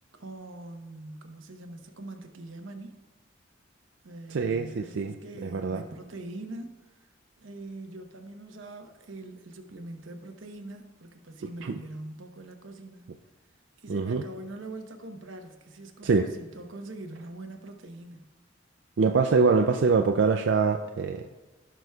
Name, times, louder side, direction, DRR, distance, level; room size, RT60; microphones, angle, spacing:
voice 1, 0.1-2.9 4.0-6.8 7.4-13.1 13.8-18.3, right 2 dB, 85° right, 4 dB, 1.0 m, -43 dB
voice 2, 4.3-5.2 5.4-5.8 11.6-11.8 13.9-14.2 16.0-16.3 19.0-21.2, right 4 dB, 70° right, 5 dB, 0.4 m, -24 dB
16.0 x 6.0 x 2.3 m, 1.2 s
head